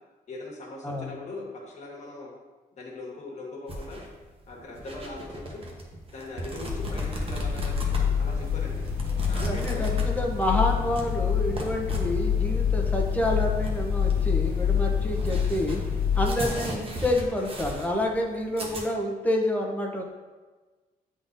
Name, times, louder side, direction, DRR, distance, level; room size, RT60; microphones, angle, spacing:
voice 1, 0.3-2.3 2.8-4.0 4.5-5.6 6.1-7.8 8.0-8.8 9.3-10.0, left 2 dB, 45° left, -2 dB, 1.5 m, -40 dB
sound 1, 3.7-18.8, right 1 dB, 35° right, 1.0 m, -37 dB
sound 2, 6.7-16.3, left 7 dB, 15° right, 1.8 m, -26 dB
voice 2, 9.3-15.8 16.2-20.0, left 1 dB, 10° left, 0 dB, 0.9 m, -28 dB
9.7 x 3.9 x 2.6 m, 1.3 s
cardioid pair, 135°, 16 cm